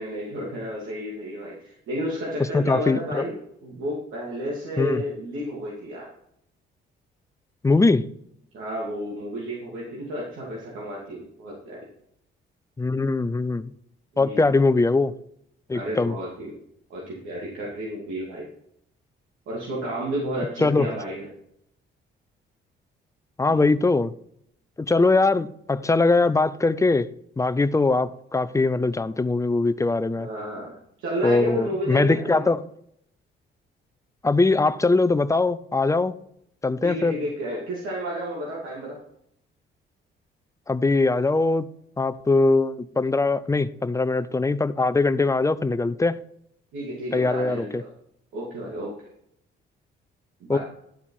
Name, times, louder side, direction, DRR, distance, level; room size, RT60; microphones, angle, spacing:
voice 1, 0.0-6.1 8.5-11.8 14.1-14.5 15.7-16.5 16.9-18.4 19.5-21.3 23.5-23.6 30.2-30.7 31.0-32.4 36.8-39.0 46.7-47.9 48.3-48.9 50.4-50.6, equal, 90° right, 2.6 m, -31 dB
voice 2, 2.5-3.2 4.8-5.0 7.6-8.1 12.8-13.7 14.2-15.1 15.7-16.2 20.6-20.9 23.4-24.1 24.8-27.1 27.4-30.3 31.2-32.6 34.2-36.2 36.6-37.1 40.7-41.7 42.0-46.2 47.1-47.8 50.5-50.6, left 3 dB, 15° left, 0.5 m, -21 dB
11.5 x 4.8 x 5.4 m
cardioid pair, 90°, 20 cm